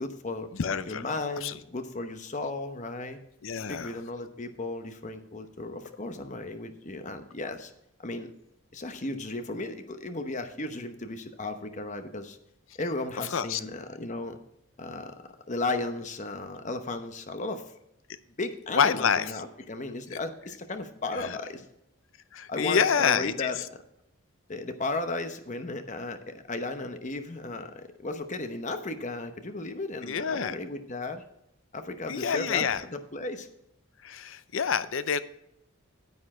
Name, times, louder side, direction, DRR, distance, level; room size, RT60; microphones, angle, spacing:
voice 1, 0.0-0.5 0.8-3.2 3.7-7.7 8.0-8.3 8.7-12.4 12.8-14.4 14.8-15.1 15.5-17.7 18.4-21.7 22.5-23.6 24.5-31.2 31.7-33.5, left 2 dB, 35° left, 8 dB, 0.9 m, -35 dB
voice 2, 0.5-1.1 1.4-1.5 3.4-3.9 13.3-13.6 18.7-19.3 20.1-20.2 21.1-21.4 22.3-23.6 30.0-30.5 32.1-32.8 34.0-35.2, left 7 dB, 65° left, 14 dB, 0.5 m, -27 dB
9.7 x 8.3 x 4.3 m, 0.80 s
head